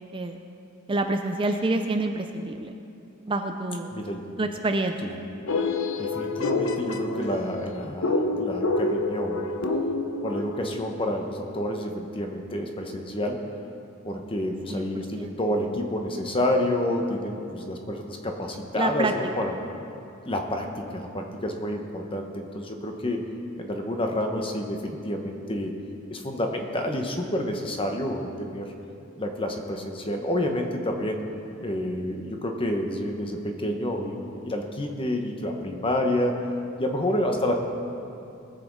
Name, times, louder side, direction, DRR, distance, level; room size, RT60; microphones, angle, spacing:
voice 1, 0.9-2.7 3.3-3.9 4.4-5.2 14.7-15.4 18.7-19.1, right 2 dB, 25° right, 5 dB, 0.5 m, -27 dB
sound 1, 5.5-10.7, left 2 dB, 75° left, 0.8 m, -27 dB
voice 2, 6.0-9.5 10.2-13.4 14.0-19.5 20.2-23.3 23.6-25.7 26.1-28.7 29.2-31.2 31.6-36.3 36.8-37.5, left 1 dB, 25° left, 3 dB, 1.1 m, -29 dB
19.5 x 7.8 x 4.7 m, 2.7 s
head